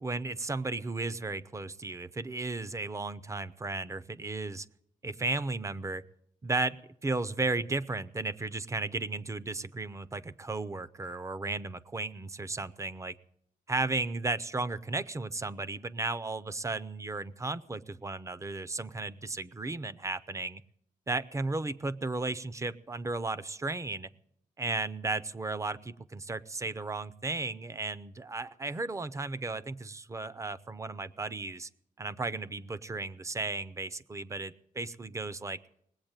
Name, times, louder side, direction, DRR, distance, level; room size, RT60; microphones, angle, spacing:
voice 1, 0.0-4.7 5.0-6.0 6.4-13.1 13.7-20.6 21.1-24.1 24.6-31.7 32.0-35.6, right 3 dB, 20° right, 16 dB, 0.5 m, -34 dB
19.5 x 8.5 x 8.9 m, 0.73 s
wide cardioid pair, 160°, 14 cm